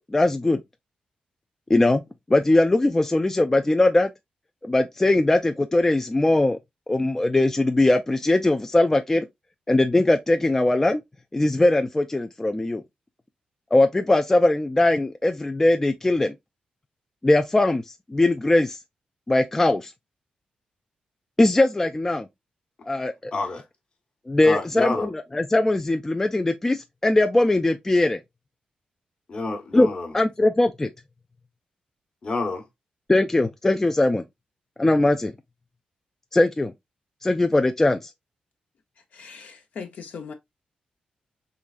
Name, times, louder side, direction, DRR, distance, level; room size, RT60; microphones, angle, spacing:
voice 1, 0.1-0.6 1.7-2.0 2.3-4.1 4.6-6.6 6.9-9.3 9.7-11.0 11.3-12.8 13.7-16.3 17.2-17.8 18.1-18.8 19.3-19.9 21.4-22.3 22.9-23.3 24.3-28.2 29.7-29.9 30.1-30.9 33.1-34.2 34.8-35.3 36.3-36.7 37.2-38.1, left 2 dB, 15° left, 0.3 m, -20 dB
voice 2, 23.3-23.7 24.4-25.1 29.3-30.2 32.2-32.7, left 3 dB, 45° left, 1.1 m, -28 dB
voice 3, 39.1-40.3, left 6 dB, 70° left, 0.7 m, -39 dB
3.8 x 3.1 x 2.4 m
cardioid pair, 105°, 3 cm